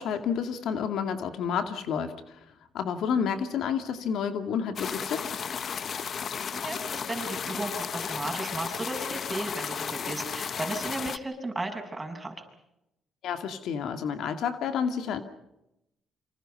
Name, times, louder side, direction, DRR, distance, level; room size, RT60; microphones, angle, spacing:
voice 1, 0.0-2.4 2.7-5.3 13.2-15.2, left 7 dB, 75° left, 8 dB, 2.2 m, -30 dB
sound 1, 4.8-11.2, left 7 dB, 50° left, 1.0 m, -34 dB
voice 2, 6.5-12.4, right 2 dB, 15° right, 3 dB, 6.8 m, -35 dB
28.0 x 26.0 x 5.5 m, 0.87 s
cardioid pair, 90°, 0 cm